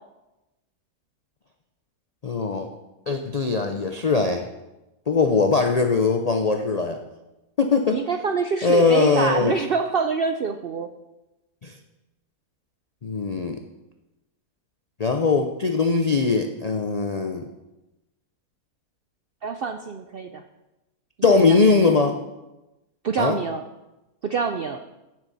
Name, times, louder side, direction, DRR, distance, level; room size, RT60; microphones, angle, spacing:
voice 1, 2.2-2.7 3.1-4.5 5.1-7.0 7.6-8.1 8.6-9.6 11.6-11.7 13.0-13.6 15.0-17.4 21.2-22.2 23.2-23.4, left 4 dB, 85° left, 5 dB, 0.3 m, -21 dB
voice 2, 7.9-10.9 19.4-20.4 21.3-21.5 23.0-23.6 24.2-24.8, right 5 dB, 85° right, 7 dB, 0.5 m, -26 dB
15.5 x 7.3 x 4.1 m, 1.0 s
omnidirectional pair, 1.7 m